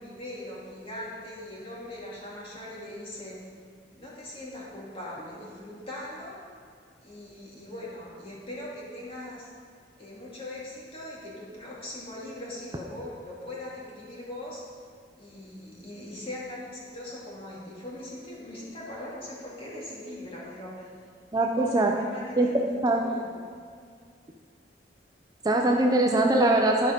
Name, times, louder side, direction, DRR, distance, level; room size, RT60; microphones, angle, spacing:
voice 1, 0.0-3.5 3.9-6.4 7.0-9.5 10.0-14.7 15.2-20.9 21.4-23.2, left 1 dB, 30° left, -6 dB, 2.3 m, -40 dB
voice 2, 21.3-21.9 22.4-23.0 25.4-26.9, right 2 dB, 20° right, 1 dB, 0.5 m, -22 dB
11.5 x 4.9 x 5.2 m, 2.2 s
head